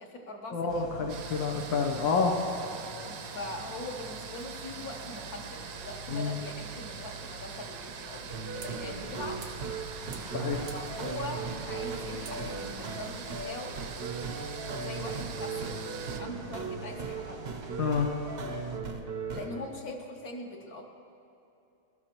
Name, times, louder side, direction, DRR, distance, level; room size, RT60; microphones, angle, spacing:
voice 1, 0.0-0.8 3.1-9.4 10.7-13.8 14.8-15.8 16.2-17.5 19.3-20.9, left 2 dB, 55° left, 1 dB, 1.5 m, -42 dB
voice 2, 0.5-2.4 6.1-6.4 10.3-10.7 17.8-18.1, left 5 dB, 90° left, 1 dB, 1.6 m, -28 dB
sound 1, 0.7-18.8, right 4 dB, 80° right, 1.8 m, -45 dB
sound 2, 1.1-16.2, right 6 dB, 65° right, 1.2 m, -44 dB
sound 3, 8.3-19.7, right 4 dB, 50° right, 0.7 m, -38 dB
20.0 x 13.0 x 3.0 m, 2.7 s
omnidirectional pair, 2.0 m